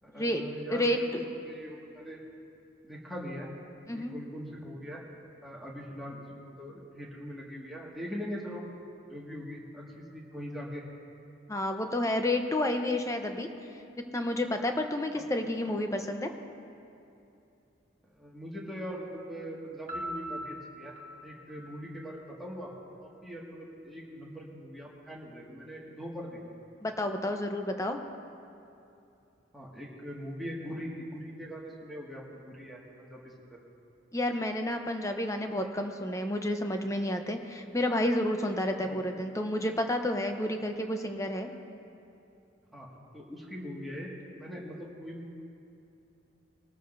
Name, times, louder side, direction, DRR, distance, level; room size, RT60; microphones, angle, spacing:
voice 1, 0.0-2.2 2.8-3.5 3.9-5.0 5.4-8.6 9.1-10.8 15.2-15.3 15.6-15.7 18.1-20.9 21.2-22.7 23.0-26.4 29.5-33.6 38.8-38.9 39.3-39.4 42.7-42.9 43.1-44.1 44.4-45.4, equal, ahead, -5 dB, 1.8 m, -41 dB
voice 2, 0.7-1.2 3.9-4.1 11.5-13.5 14.1-16.3 26.8-28.0 34.1-41.5, left 1 dB, 15° left, 5 dB, 0.7 m, -30 dB
Piano, 19.9-22.7, equal, 45° right, 1.4 m, -41 dB
21.5 x 13.5 x 2.6 m, 2.7 s
head